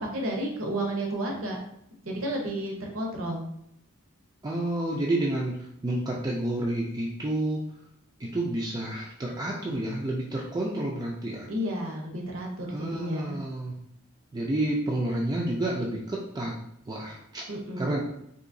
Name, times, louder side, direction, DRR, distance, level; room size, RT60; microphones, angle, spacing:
voice 1, 0.0-1.6 2.1-3.4 11.5-13.4 17.5-18.0, right 1 dB, 65° right, 0 dB, 0.8 m, -32 dB
voice 2, 4.4-7.7 8.2-11.5 12.7-13.7 14.3-16.5 16.9-17.4 17.8-18.0, right 1 dB, 20° right, -3 dB, 0.3 m, -30 dB
3.8 x 2.7 x 2.6 m, 0.74 s
head